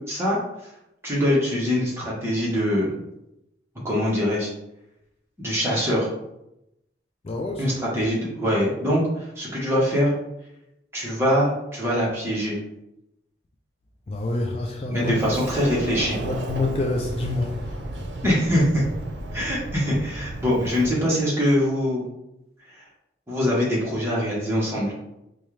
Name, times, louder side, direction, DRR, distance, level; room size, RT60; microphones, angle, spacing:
voice 1, 0.1-0.4 1.0-2.9 3.8-4.5 5.4-6.1 7.6-9.0 9.4-10.1 10.9-12.6 14.9-16.2 18.2-18.8 19.3-22.0 23.3-24.9, equal, 15° right, -6 dB, 1.1 m, -23 dB
voice 2, 7.2-7.9 14.1-15.4 16.2-18.0, left 2 dB, 35° left, 1 dB, 0.4 m, -28 dB
Sliding door, 15.0-20.9, right 1 dB, 80° right, 0.6 m, -33 dB
4.2 x 2.3 x 3.2 m, 0.86 s
head